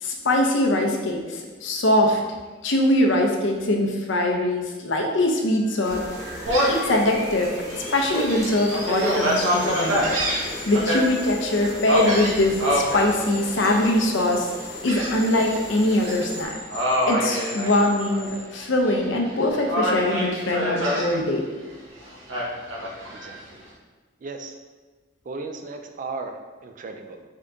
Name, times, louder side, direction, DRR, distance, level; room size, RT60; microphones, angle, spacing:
voice 1, 0.0-2.2 2.6-6.4 6.7-10.2 10.7-14.5 14.8-16.5 17.1-21.5, left 1 dB, 70° left, 1 dB, 0.6 m, -22 dB
sound 1, 5.4-18.4, left 1 dB, 5° right, 1.3 m, -40 dB
sound 2, 5.8-16.4, right 1 dB, 15° left, 0.9 m, -37 dB
Gull seagull, 6.5-6.9 7.4-7.5 8.0-11.0 11.9-13.0 13.6-14.0 14.9-15.6 15.9-16.2 16.7-18.3 18.6-19.3 19.7-21.1 22.3-23.3, equal, 80° right, 1.0 m, -25 dB
voice 2, 23.1-23.6 24.2-24.6 25.3-27.2, right 3 dB, 45° right, 5 dB, 0.4 m, -36 dB
3.8 x 3.7 x 3.4 m, 1.3 s
head